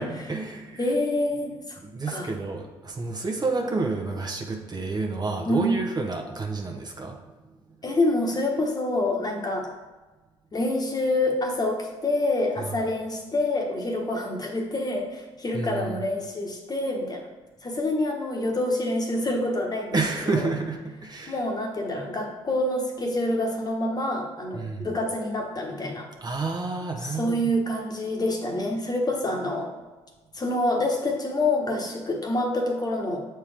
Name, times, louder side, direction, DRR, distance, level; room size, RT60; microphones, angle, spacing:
voice 1, 0.0-0.8 1.8-7.2 15.5-16.0 19.9-21.4 24.5-24.9 26.2-27.5, right 3 dB, 35° right, 2 dB, 1.0 m, -29 dB
voice 2, 0.8-1.8 2.1-2.3 5.4-5.8 7.8-9.7 10.5-17.3 17.6-20.0 20.3-20.5 21.3-26.1 27.0-29.7 30.3-33.2, left 1 dB, 30° left, 1 dB, 1.3 m, -27 dB
7.1 x 4.5 x 3.4 m, 1.2 s
supercardioid pair, 60°, 12 cm